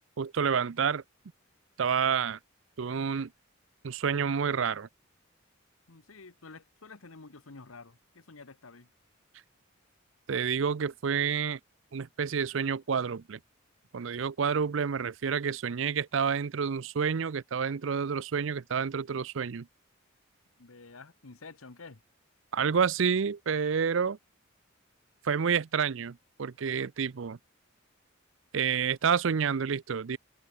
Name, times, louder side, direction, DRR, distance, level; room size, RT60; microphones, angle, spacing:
voice 1, 0.2-1.0 1.8-2.4 2.8-3.3 3.8-4.9 10.3-11.6 11.9-13.4 13.9-19.7 22.5-24.2 25.2-27.4 28.5-30.2, right 6 dB, 65° right, 0.5 m, -29 dB
voice 2, 5.9-8.9 20.6-22.0, left 3 dB, 90° left, 1.4 m, -50 dB
open air
head